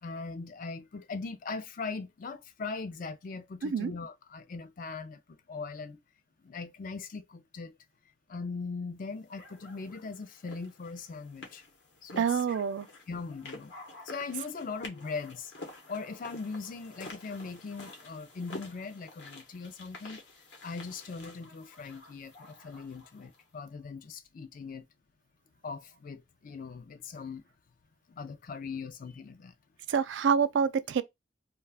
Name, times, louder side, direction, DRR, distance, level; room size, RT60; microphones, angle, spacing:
voice 1, 0.0-6.0 6.4-7.8 8.3-11.6 12.0-12.4 13.1-13.7 14.0-15.5 15.9-20.2 20.6-24.8 25.6-27.4 28.1-29.5, left 4 dB, 50° left, 0.4 m, -40 dB
sound 1, 9.4-23.4, left 2 dB, 70° left, 0.9 m, -49 dB
voice 2, 12.2-12.9 29.9-31.0, right 6 dB, 90° right, 0.4 m, -27 dB
2.3 x 2.2 x 3.3 m
head